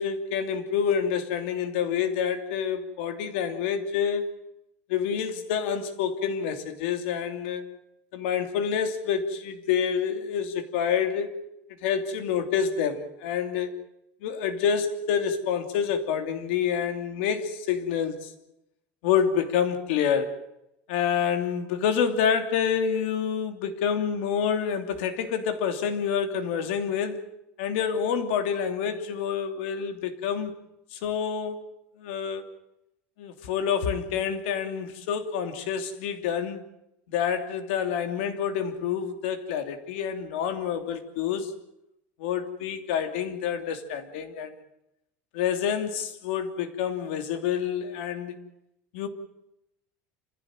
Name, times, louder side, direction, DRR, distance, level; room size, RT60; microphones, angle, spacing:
voice 1, 0.0-4.3 4.9-7.7 8.1-11.3 11.8-13.8 14.2-18.3 19.0-20.4 20.9-27.2 27.6-30.5 30.9-31.6 32.0-32.4 33.2-36.6 37.1-41.5 42.2-44.5 45.3-48.4 48.9-49.1, left 7 dB, 85° left, 3.0 m, -27 dB
28.0 x 16.0 x 9.1 m
cardioid pair, 170°, 6 cm